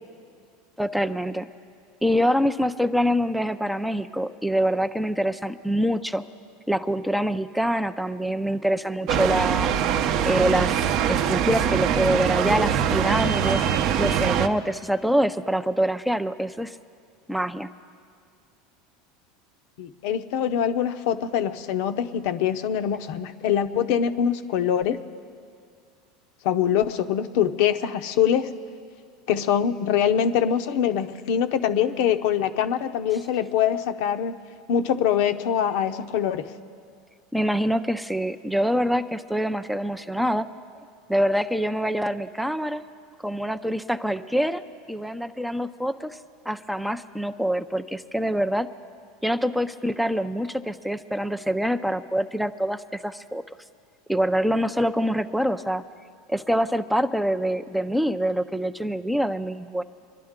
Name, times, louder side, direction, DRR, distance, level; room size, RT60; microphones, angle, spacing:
voice 1, 0.8-1.5 2.0-6.2 6.7-9.7 10.3-13.6 14.0-16.8 17.3-17.7 37.3-40.5 41.1-42.8 43.2-44.6 44.9-46.2 46.5-48.7 49.2-53.4 54.1-55.8 56.3-59.8, equal, ahead, 9 dB, 0.4 m, -25 dB
sound 1, 9.1-14.5, right 8 dB, 55° right, 0.6 m, -23 dB
voice 2, 19.8-25.0 26.4-28.5 29.3-34.3 34.7-36.5, left 9 dB, 70° left, 9 dB, 0.6 m, -24 dB
24.5 x 11.5 x 3.6 m, 2.2 s
supercardioid pair, 120°, 0 cm